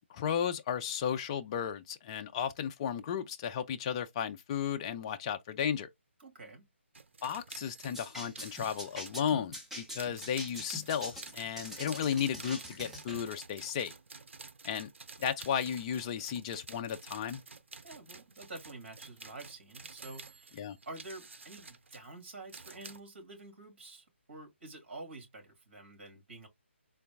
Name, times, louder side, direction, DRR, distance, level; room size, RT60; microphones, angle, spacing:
voice 1, 0.1-5.9 7.2-13.9 14.6-14.9 15.2-17.4 20.6-20.8, left 8 dB, 25° left, 0.4 m, -34 dB
voice 2, 6.2-6.7 17.8-26.5, right 2 dB, 55° right, 2.3 m, -48 dB
sound 1, 6.9-9.4 10.0-23.0, right 4 dB, 75° right, 0.7 m, -51 dB
sound 2, 7.9-13.3, equal, 5° right, 0.7 m, -44 dB
3.9 x 2.2 x 3.4 m
figure-of-eight pair, 150°, 7 cm